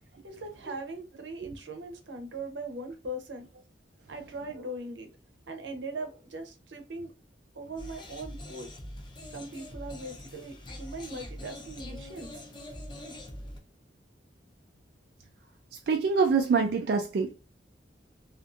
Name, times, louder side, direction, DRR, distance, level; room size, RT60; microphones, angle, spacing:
voice 1, 0.2-3.5 4.1-5.1 5.5-7.1 7.5-8.7 9.3-12.4, right 2 dB, 85° right, 0.7 m, -40 dB
sound 1, 7.8-13.6, left 1 dB, 25° left, 0.6 m, -43 dB
voice 2, 15.9-17.3, right 5 dB, 60° right, 0.3 m, -25 dB
2.5 x 2.5 x 2.4 m
head